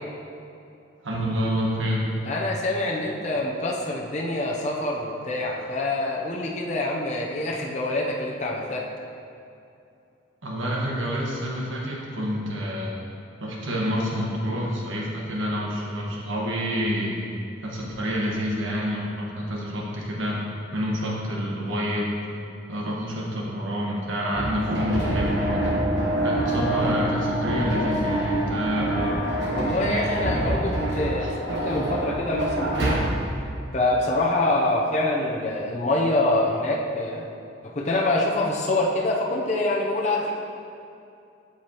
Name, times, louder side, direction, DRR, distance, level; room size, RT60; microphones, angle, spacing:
voice 1, 1.0-2.0 10.4-13.0 13.4-17.2 17.6-20.3 20.7-22.1 22.7-25.8 26.2-29.1 29.5-30.0 31.2-31.3, equal, 85° right, -3 dB, 1.4 m, -28 dB
voice 2, 2.3-8.8 29.5-33.1 33.7-37.3 37.6-40.4, left 2 dB, 35° left, -2 dB, 0.6 m, -25 dB
sound 1, 24.3-32.9, right 1 dB, 65° right, 1.1 m, -26 dB
Wind instrument woodwind instrument, 25.0-30.8, left 1 dB, 55° left, 1.4 m, -36 dB
7.7 x 7.1 x 2.9 m, 2.6 s
head